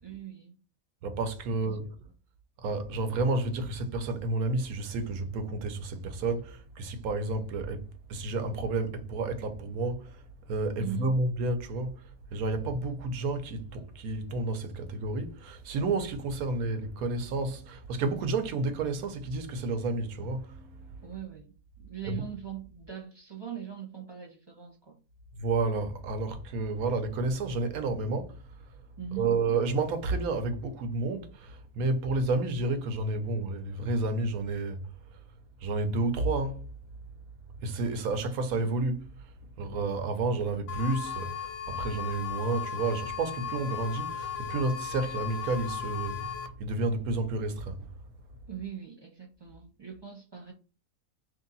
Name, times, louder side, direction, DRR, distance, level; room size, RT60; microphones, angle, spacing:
voice 1, 0.0-0.6 1.6-1.9 10.8-11.1 21.0-21.5 21.8-25.0 29.0-29.3 48.5-50.5, right 10 dB, 20° right, 0.9 m, -41 dB
voice 2, 1.0-2.0 2.6-10.2 10.5-12.0 12.3-20.7 22.1-22.3 25.3-28.4 29.2-34.8 35.6-36.6 37.6-39.1 39.6-47.9, right 3 dB, 80° right, 1.1 m, -30 dB
sound 1, 40.7-46.5, left 9 dB, 65° left, 0.8 m, -37 dB
3.2 x 2.7 x 3.9 m
omnidirectional pair, 1.5 m